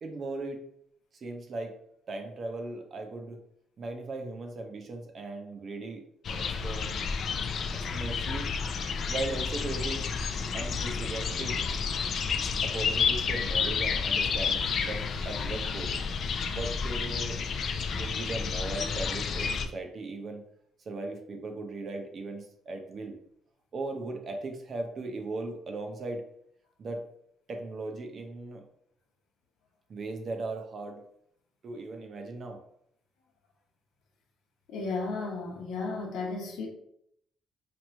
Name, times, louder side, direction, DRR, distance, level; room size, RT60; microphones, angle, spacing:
voice 1, 0.0-0.6 1.2-1.8 2.1-3.4 3.8-6.0 6.3-7.1 7.9-8.5 9.1-10.1 10.5-11.6 12.6-15.9 16.5-17.4 17.9-20.4 20.9-23.2 23.7-26.2 26.8-27.0 27.5-28.6 29.9-31.0 31.6-32.6, right 2 dB, 35° right, 4 dB, 0.6 m, -38 dB
sound 1, 6.2-19.7, left 5 dB, 45° left, 0.3 m, -30 dB
voice 2, 34.7-36.7, left 3 dB, 80° left, 1 dB, 0.9 m, -34 dB
3.0 x 2.5 x 4.3 m, 0.71 s
cardioid pair, 155°, 0 cm